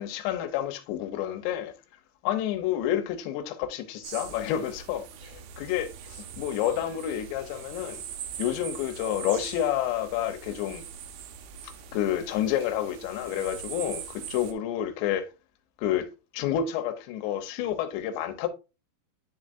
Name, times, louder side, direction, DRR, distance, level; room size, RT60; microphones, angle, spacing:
voice 1, 0.0-1.7 2.2-8.0 8.4-10.8 11.6-15.3 15.8-16.1 16.3-18.5, left 10 dB, 80° left, 3.0 m, -29 dB
sound 1, 4.0-14.5, right 8 dB, 75° right, 2.2 m, -42 dB
10.0 x 4.6 x 2.5 m
omnidirectional pair, 5.2 m